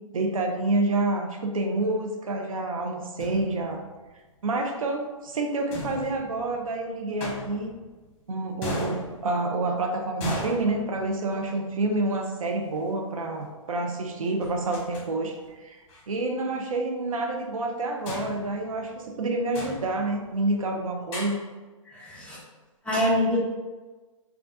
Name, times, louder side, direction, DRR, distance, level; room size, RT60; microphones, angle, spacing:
voice 1, 0.1-3.8 4.4-7.7 8.3-21.4, right 2 dB, 85° right, 2 dB, 0.5 m, -28 dB
sound 1, 3.2-4.0 5.7-6.7 7.2-8.1 8.6-9.7 10.2-11.5 12.8-12.9 14.4-15.1 15.4-15.5 15.9-16.0 18.1-19.2 19.5-20.4 21.1-21.3, left 1 dB, 55° left, 1.0 m, -37 dB
voice 2, 21.8-22.4 22.8-23.4, left 1 dB, 5° left, -6 dB, 0.7 m, -25 dB
3.5 x 2.2 x 2.5 m, 1.3 s
hypercardioid pair, 125°, 17 cm